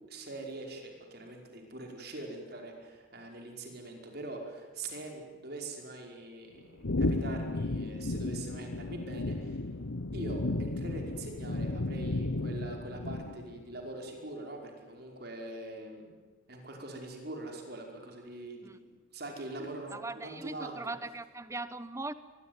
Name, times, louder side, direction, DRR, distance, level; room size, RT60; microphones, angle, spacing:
voice 1, 0.1-9.6 10.1-16.1 16.5-18.8 19.1-20.9, right 2 dB, 50° right, 2 dB, 5.2 m, -43 dB
sound 1, 6.8-13.6, left 2 dB, 85° left, 1.0 m, -34 dB
voice 2, 19.9-22.1, right 2 dB, 15° right, 14 dB, 1.0 m, -39 dB
24.5 x 21.5 x 9.7 m, 1.3 s
head